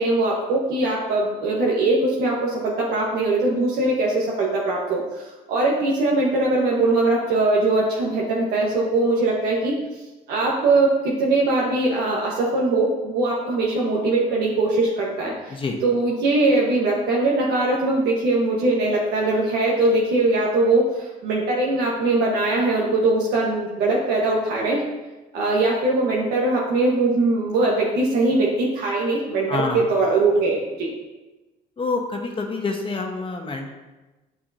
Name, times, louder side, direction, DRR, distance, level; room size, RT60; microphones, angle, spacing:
voice 1, 0.0-9.7 10.3-15.6 15.8-24.8 25.3-30.9, right 2 dB, 80° right, -4 dB, 1.4 m, -21 dB
voice 2, 29.5-29.8 31.8-33.7, left 3 dB, 30° left, 3 dB, 0.9 m, -27 dB
9.2 x 5.9 x 2.8 m, 1.1 s
cardioid pair, 110°, 17 cm